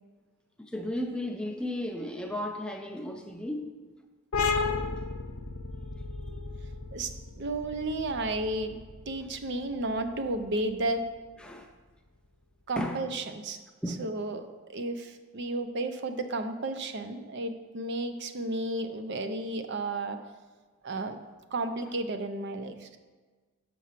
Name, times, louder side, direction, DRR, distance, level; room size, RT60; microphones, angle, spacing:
voice 1, 0.6-3.7 9.0-9.1 11.4-11.7 12.8-13.0 13.8-14.0, left 1 dB, 5° left, 3 dB, 0.5 m, -34 dB
sound 1, 4.3-11.6, left 4 dB, 85° left, 0.7 m, -34 dB
voice 2, 6.9-8.8 9.1-11.1 12.7-13.6 14.0-20.2 20.8-21.2 21.5-23.0, right 2 dB, 55° right, 9 dB, 0.5 m, -33 dB
6.1 x 5.7 x 5.8 m, 1.4 s
head